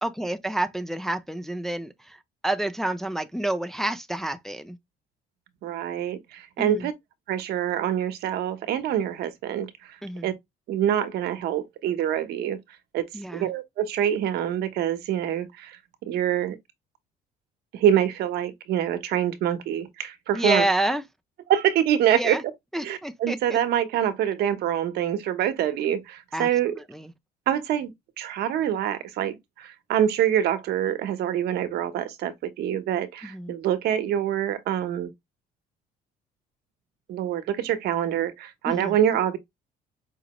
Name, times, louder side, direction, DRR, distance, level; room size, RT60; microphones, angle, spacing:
voice 1, 0.0-2.2 2.4-4.8 6.6-6.9 10.0-10.3 13.1-13.5 20.3-21.0 22.1-22.4 22.7-23.6 26.3-26.5 26.8-27.1 33.2-33.5 38.7-39.0, right 1 dB, ahead, 0.4 m, -28 dB
voice 2, 5.6-6.9 7.3-10.0 10.2-10.3 10.7-12.6 12.9-16.6 17.7-20.6 21.5-22.4 22.8-26.8 27.5-35.1 37.1-39.4, right 10 dB, 75° right, 0.8 m, -25 dB
5.0 x 2.0 x 2.9 m
cardioid pair, 110°, 17 cm